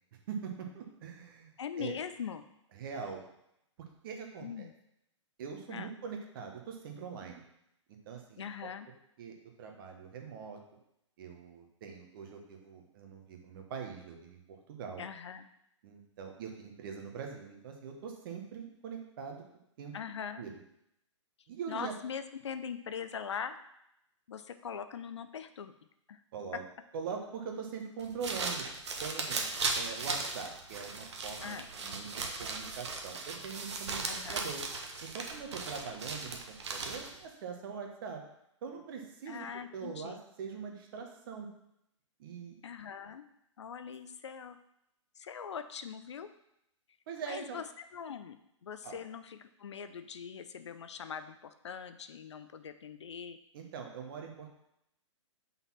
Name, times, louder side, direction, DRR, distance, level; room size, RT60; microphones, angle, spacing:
voice 1, 0.3-1.5 1.8-1.9 2.7-3.2 4.0-4.7 5.4-7.4 8.1-8.7 9.2-10.6 11.2-14.4 14.7-15.0 15.8-19.4 19.8-19.9 20.4-20.5 21.5-21.9 26.3-26.6 26.9-28.6 29.0-29.5 29.7-34.6 35.0-38.2 38.6-39.5 39.7-41.5 42.2-42.6 47.1-47.6 48.8-49.0 53.5-54.5, right 6 dB, 45° right, 3 dB, 1.2 m, -42 dB
voice 2, 1.6-2.4 4.4-4.7 5.7-5.9 8.4-8.9 15.0-15.5 19.9-20.5 21.7-23.6 24.3-25.7 26.1-26.2 31.4-31.7 34.1-34.4 39.3-40.2 42.6-43.2 43.6-44.6 45.2-46.3 47.2-53.4, left 7 dB, 65° left, 10 dB, 0.5 m, -42 dB
sound 1, 28.0-37.2, right 3 dB, 65° right, 1.0 m, -37 dB
5.5 x 4.1 x 5.7 m, 0.80 s
figure-of-eight pair, 115°, 16 cm